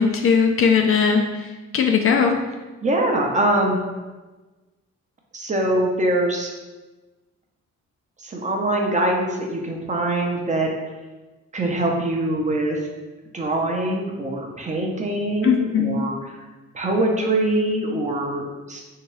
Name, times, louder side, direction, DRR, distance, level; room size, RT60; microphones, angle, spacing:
voice 1, 0.0-2.4 15.4-16.1, left 6 dB, 45° left, 4 dB, 0.4 m, -19 dB
voice 2, 2.8-3.8 5.3-6.5 8.2-10.7 11.5-12.8 13.3-16.2 16.7-18.8, right 1 dB, 25° right, 0 dB, 0.6 m, -23 dB
3.4 x 2.8 x 3.1 m, 1.2 s
cardioid pair, 90°, 30 cm